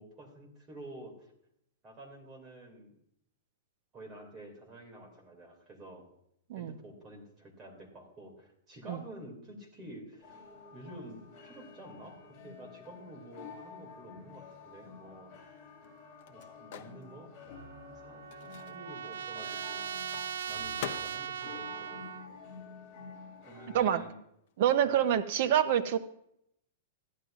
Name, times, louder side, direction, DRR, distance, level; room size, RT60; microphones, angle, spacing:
voice 1, 0.0-1.3 1.8-3.0 3.9-6.1 6.5-10.4 10.7-15.4 16.3-17.3 17.8-20.1 20.5-22.4 23.4-24.2 24.9-25.1, right 1 dB, 20° right, -1 dB, 2.6 m, -50 dB
sound 1, 10.2-23.8, left 5 dB, 20° left, 3.8 m, -50 dB
Microwave oven, 14.9-23.0 23.2-25.2, left 10 dB, 45° left, 0.8 m, -49 dB
Trumpet, 17.5-22.3, right 8 dB, 80° right, 0.3 m, -39 dB
voice 2, 24.6-26.0, right 10 dB, 50° right, 9 dB, 0.8 m, -26 dB
14.5 x 11.0 x 2.5 m, 0.73 s
supercardioid pair, 170°, 0 cm